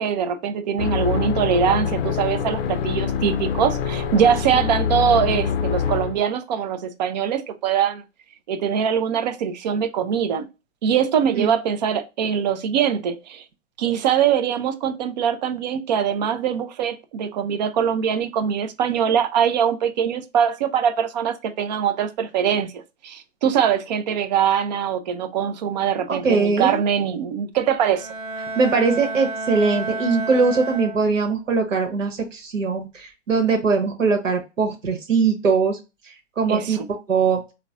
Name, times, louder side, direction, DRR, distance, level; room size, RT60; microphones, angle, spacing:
voice 1, 0.0-8.0 8.5-10.5 10.8-13.4 13.8-28.1 36.5-36.9, right 8 dB, 35° right, 0.4 m, -22 dB
sound 1, 0.8-6.2, left 7 dB, 50° left, 0.5 m, -25 dB
voice 2, 26.1-26.8 28.5-35.8 36.4-36.8 37.1-37.4, right 4 dB, 80° right, 1.0 m, -21 dB
Bowed string instrument, 27.9-31.4, right 2 dB, 5° right, 1.1 m, -31 dB
4.0 x 2.1 x 2.4 m
hypercardioid pair, 120°, 37 cm